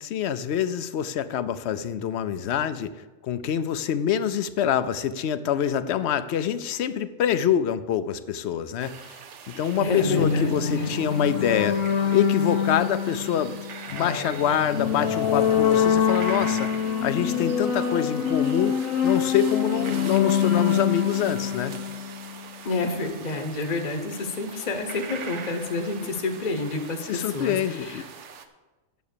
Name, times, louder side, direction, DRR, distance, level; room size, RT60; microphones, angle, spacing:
voice 1, 0.0-2.9 3.2-9.1 9.5-11.8 12.1-13.6 13.9-16.7 17.0-21.7 27.1-28.0, left 9 dB, 65° left, 13 dB, 0.8 m, -26 dB
sound 1, 8.8-28.5, right 6 dB, 65° right, 1.1 m, -42 dB
voice 2, 9.8-11.1 22.6-28.0, left 3 dB, 35° left, 5 dB, 1.0 m, -29 dB
sound 2, 10.0-22.5, left 8 dB, 90° left, 1.3 m, -25 dB
9.3 x 7.3 x 6.8 m, 1.2 s
omnidirectional pair, 1.3 m